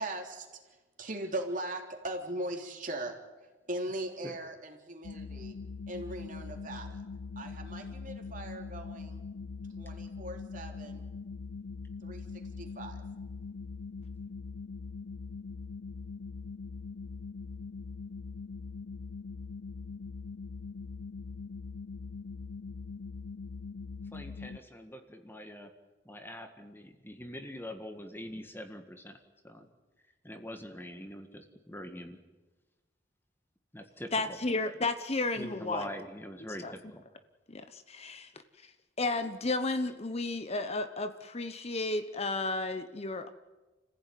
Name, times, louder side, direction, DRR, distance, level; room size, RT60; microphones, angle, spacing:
voice 1, 0.0-5.5 5.9-7.0 7.3-9.2 9.8-11.1 12.0-13.0, right 1 dB, 45° right, 3 dB, 3.4 m, -39 dB
sound 1, 5.0-24.6, left 4 dB, 75° left, 0.7 m, -42 dB
voice 2, 24.1-25.7 26.1-29.2 29.4-29.7 30.2-32.2 33.7-34.4 35.3-37.0, equal, 10° left, 6 dB, 1.8 m, -44 dB
voice 3, 34.1-35.9 36.6-36.7 37.5-38.3 38.6-38.7 39.0-43.3, left 2 dB, 35° left, 9 dB, 1.1 m, -33 dB
29.5 x 15.5 x 9.4 m, 1.2 s
head